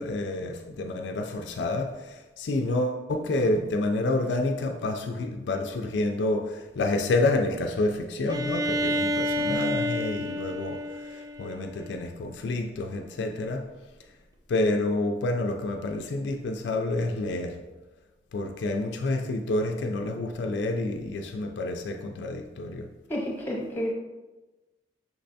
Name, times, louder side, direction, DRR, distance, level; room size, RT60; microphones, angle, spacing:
voice 1, 0.0-13.6 14.5-17.6 18.3-22.9, left 2 dB, 70° left, 4 dB, 0.4 m, -28 dB
Bowed string instrument, 8.3-12.0, equal, 20° right, 0.4 m, -29 dB
voice 2, 23.1-23.9, equal, 10° left, -4 dB, 1.0 m, -30 dB
5.9 x 3.2 x 2.6 m, 1.2 s
head